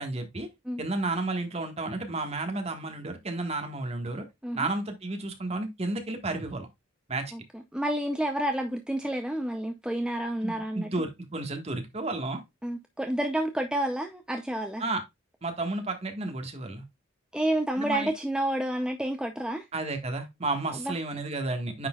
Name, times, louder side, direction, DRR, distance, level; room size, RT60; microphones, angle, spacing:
voice 1, 0.0-0.5 0.8-4.2 4.5-6.7 7.1-7.3 10.4-12.4 14.8-15.0 15.4-16.8 17.8-18.1 19.7-21.9, right 2 dB, 30° right, 1.5 m, -32 dB
voice 2, 7.3-10.9 12.6-14.8 17.3-19.7 20.8-21.0, right 1 dB, 5° right, 0.5 m, -30 dB
9.4 x 4.3 x 2.3 m
head